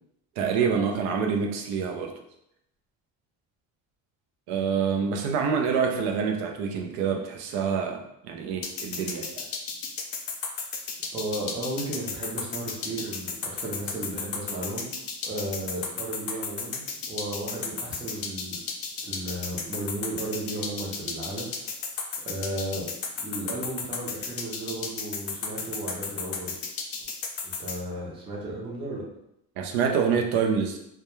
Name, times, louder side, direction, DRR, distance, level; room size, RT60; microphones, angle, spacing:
voice 1, 0.4-2.1 4.5-9.5 29.6-30.8, right 6 dB, 80° right, 3 dB, 0.5 m, -26 dB
sound 1, 8.6-27.8, left 6 dB, 70° left, 0.5 m, -33 dB
voice 2, 11.1-14.9 15.2-16.8 17.1-18.6 19.0-21.5 22.2-22.9 23.2-26.6 27.4-29.0, right 1 dB, 15° right, -4 dB, 0.5 m, -34 dB
2.2 x 2.2 x 3.0 m, 0.78 s
cardioid pair, 160°, 36 cm